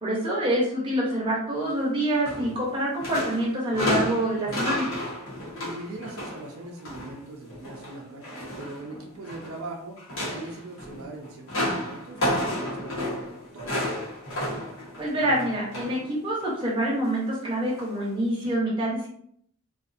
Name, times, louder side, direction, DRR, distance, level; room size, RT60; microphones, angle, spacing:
voice 1, 0.0-4.9 15.0-19.1, right 1 dB, 25° right, -5 dB, 0.7 m, -26 dB
sound 1, 2.2-2.7 3.0-7.1 7.5-9.6 10.0-16.1 16.4-16.6 17.7-17.8 18.4-18.5, left 1 dB, 60° left, 0.9 m, -32 dB
voice 2, 5.6-10.0 10.3-14.1, right 2 dB, 70° right, 1 dB, 0.5 m, -41 dB
2.5 x 2.3 x 2.5 m, 0.67 s
head